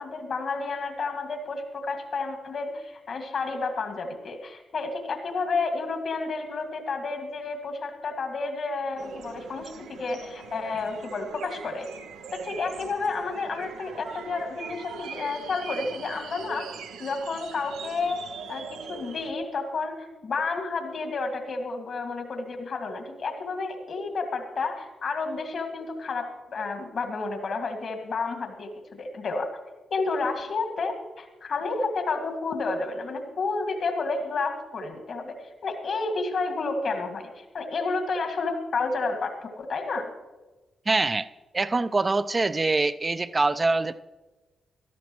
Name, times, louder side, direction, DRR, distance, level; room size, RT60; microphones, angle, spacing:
voice 1, 0.0-11.9 12.3-16.7 17.0-29.5 29.9-40.1, left 3 dB, 65° left, 5 dB, 1.9 m, -31 dB
sound 1, 9.0-19.3, right 6 dB, 85° right, 0.7 m, -41 dB
voice 2, 40.9-41.3 41.5-44.0, right 3 dB, 35° right, 13 dB, 0.5 m, -24 dB
17.5 x 13.0 x 3.1 m, 1.2 s
hypercardioid pair, 40°, 0 cm